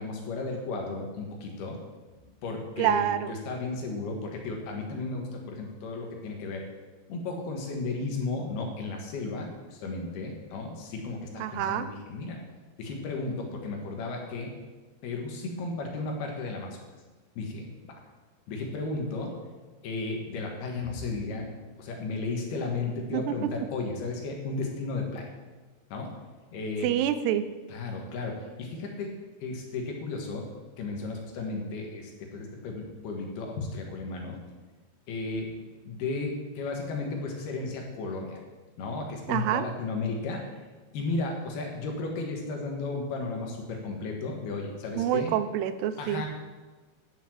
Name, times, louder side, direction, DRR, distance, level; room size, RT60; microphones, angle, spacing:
voice 1, 0.0-1.8 2.4-6.7 7.1-12.4 12.8-14.6 15.0-16.8 17.4-17.6 18.5-19.4 19.8-21.5 21.8-25.3 25.9-26.2 26.5-26.9 27.7-29.2 29.4-30.5 30.8-34.4 35.1-38.4 38.8-40.6 40.9-45.3 46.0-46.3, left 3 dB, 75° left, 1 dB, 3.5 m, -34 dB
voice 2, 2.8-3.4 11.4-11.9 23.1-23.5 26.8-27.5 39.3-39.6 45.0-46.2, right 10 dB, 90° right, 11 dB, 2.7 m, -27 dB
9.5 x 6.8 x 7.6 m, 1.3 s
omnidirectional pair, 4.7 m